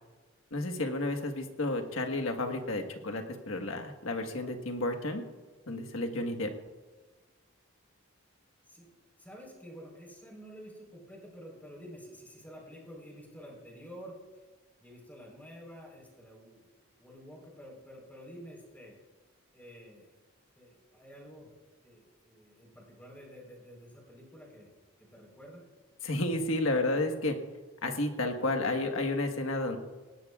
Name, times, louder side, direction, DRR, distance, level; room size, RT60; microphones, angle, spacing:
voice 1, 0.5-5.2 5.7-6.5 26.0-27.4 27.8-29.8, left 2 dB, 75° left, 4 dB, 1.5 m, -31 dB
voice 2, 9.2-14.2 14.8-16.7 17.0-18.9 19.5-20.2 20.6-21.5 21.8-24.7 25.1-25.6, equal, 10° left, -2 dB, 4.1 m, -50 dB
19.0 x 18.0 x 2.4 m, 1.3 s
head